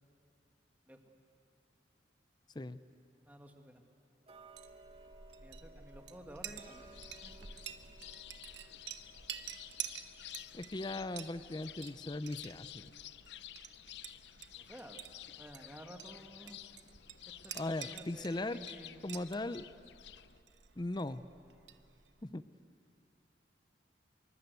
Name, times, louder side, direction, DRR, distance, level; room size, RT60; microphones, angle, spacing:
voice 1, 3.3-3.8 5.4-6.8 7.2-7.5 14.6-15.0 15.3-16.6 17.3-19.1, equal, 10° right, 3 dB, 1.8 m, -53 dB
Tick-tock, 4.3-15.1 15.5-15.6 16.2-16.3 16.7-16.8 17.4-17.5 18.0-18.1 18.6-18.7 19.2-19.3, right 3 dB, 35° right, 1.1 m, -62 dB
Chink clink, 4.4-22.2, right 9 dB, 75° right, 1.1 m, -50 dB
sound 1, 6.6-20.4, left 12 dB, 70° left, 0.5 m, -52 dB
voice 2, 10.5-12.9 17.5-18.6 19.0-19.7 20.8-21.2 22.2-22.4, left 2 dB, 25° left, 13 dB, 0.6 m, -38 dB
25.5 x 23.5 x 8.2 m, 2.5 s
head